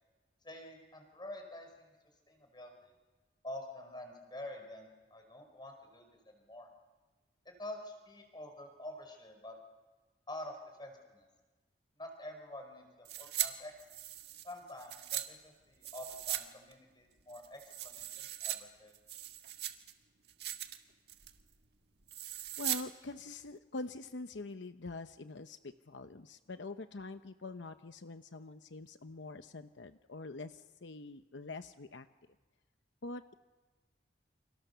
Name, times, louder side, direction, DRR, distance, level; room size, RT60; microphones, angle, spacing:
voice 1, 0.4-1.9 2.3-2.9 3.4-6.7 7.4-9.5 10.3-11.3 12.0-13.7 14.4-18.9, left 1 dB, 25° left, 4 dB, 5.1 m, -48 dB
sound 1, 13.0-13.5 13.8-15.2 15.8-16.4 16.7-16.8 17.3-18.6 18.9-19.9 20.3-20.8 21.1-21.4 22.1-22.8 23.1-23.2, right 12 dB, 60° right, 1.7 m, -39 dB
voice 2, 22.6-32.1 33.0-33.3, left 3 dB, 80° left, 9 dB, 0.9 m, -45 dB
29.5 x 27.5 x 6.9 m, 1.3 s
head